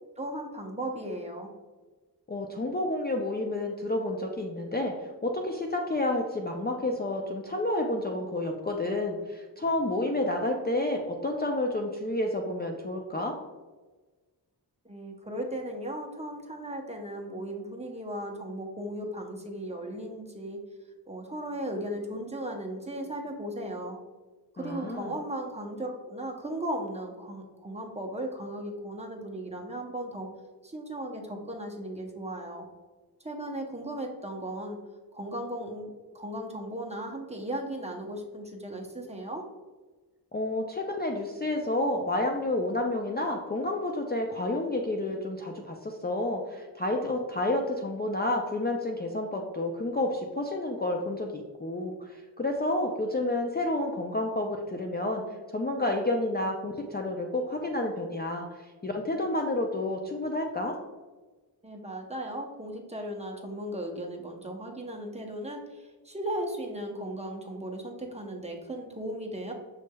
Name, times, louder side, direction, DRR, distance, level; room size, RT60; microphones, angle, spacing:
voice 1, 0.2-1.5 14.8-20.6 21.1-24.0 24.6-30.3 30.6-32.7 33.2-34.8 35.1-39.4 61.6-69.5, right 1 dB, 15° right, 1 dB, 0.6 m, -36 dB
voice 2, 2.3-4.9 5.2-13.3 24.6-25.1 40.3-55.2 55.5-58.5 58.8-60.7, left 1 dB, 25° left, 1 dB, 0.4 m, -30 dB
6.3 x 3.2 x 2.2 m, 1.3 s
wide cardioid pair, 95°, 41 cm